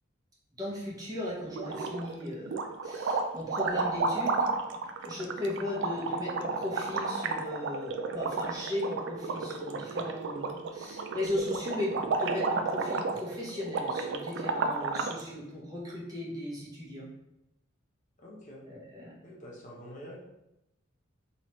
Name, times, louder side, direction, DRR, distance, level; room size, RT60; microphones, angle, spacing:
voice 1, 0.6-4.5 5.0-17.1 18.7-19.3, left 1 dB, 20° right, -6 dB, 0.9 m, -37 dB
sound 1, 1.5-2.2 2.5-15.2, right 4 dB, 60° right, 0.3 m, -32 dB
voice 2, 18.2-18.6 19.2-20.2, equal, 40° left, -3 dB, 0.8 m, -47 dB
3.0 x 3.0 x 3.0 m, 0.90 s
head